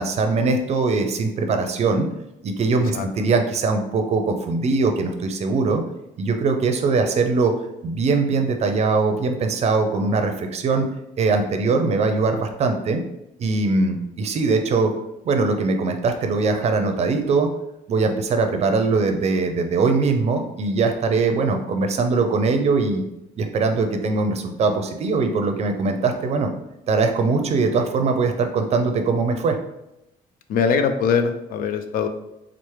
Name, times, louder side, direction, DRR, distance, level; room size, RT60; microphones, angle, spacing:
voice 1, 0.0-2.1 2.4-5.8 6.2-7.5 7.8-10.9 11.2-13.0 13.4-14.9 15.3-17.5 17.9-23.0 23.4-26.5 26.9-29.6, right 4 dB, 45° right, 5 dB, 0.5 m, -21 dB
voice 2, 30.5-32.1, left 6 dB, 65° left, 8 dB, 0.4 m, -21 dB
4.4 x 2.0 x 3.2 m, 0.88 s
cardioid pair, 120°, 16 cm